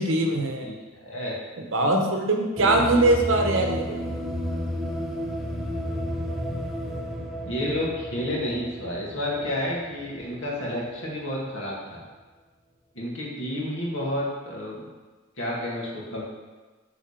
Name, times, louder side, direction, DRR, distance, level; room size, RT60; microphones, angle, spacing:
voice 1, 0.0-0.7 1.7-4.0, right 2 dB, 65° right, 3 dB, 0.9 m, -22 dB
voice 2, 0.6-1.3 2.7-2.8 7.4-12.0 12.9-14.9 15.4-16.2, left 1 dB, 65° left, -4 dB, 2.0 m, -30 dB
sound 1, 2.6-10.8, equal, ahead, 0.6 m, -32 dB
8.4 x 4.0 x 5.1 m, 1.3 s
head